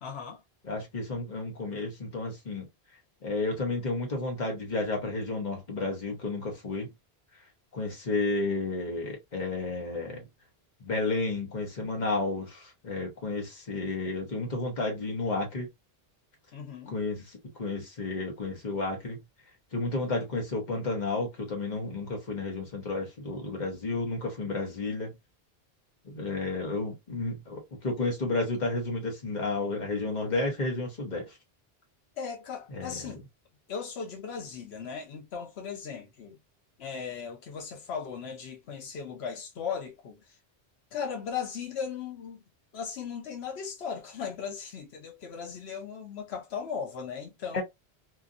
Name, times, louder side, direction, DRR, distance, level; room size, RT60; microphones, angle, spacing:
voice 1, 0.0-0.4 16.5-17.0 32.2-33.2 33.7-36.4 36.8-40.2 40.9-42.4 42.7-47.6, left 6 dB, 90° left, 1.0 m, -37 dB
voice 2, 0.6-2.6 3.2-6.9 7.7-10.2 10.8-15.7 16.9-19.2 19.7-25.1 26.0-31.4 32.7-33.2 47.5-47.6, left 2 dB, 45° left, 1.2 m, -32 dB
2.9 x 2.5 x 2.4 m
omnidirectional pair, 1.0 m